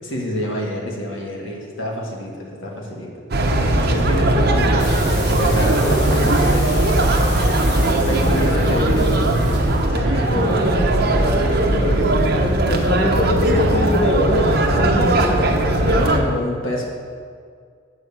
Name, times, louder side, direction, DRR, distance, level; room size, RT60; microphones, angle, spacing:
voice 1, 0.0-6.7 7.7-9.3 9.9-10.9 11.4-12.0 12.4-12.7 15.8-16.9, left 1 dB, 70° left, -1 dB, 1.6 m, -27 dB
sound 1, 3.3-16.2, right 1 dB, 50° right, 0.8 m, -18 dB
sound 2, 4.8-9.9, left 1 dB, 50° left, 1.6 m, -34 dB
voice 2, 8.1-8.7 10.4-10.6 11.8-12.2 12.7-15.6, left 1 dB, 30° left, -1 dB, 0.7 m, -24 dB
7.6 x 5.0 x 7.1 m, 2.1 s
head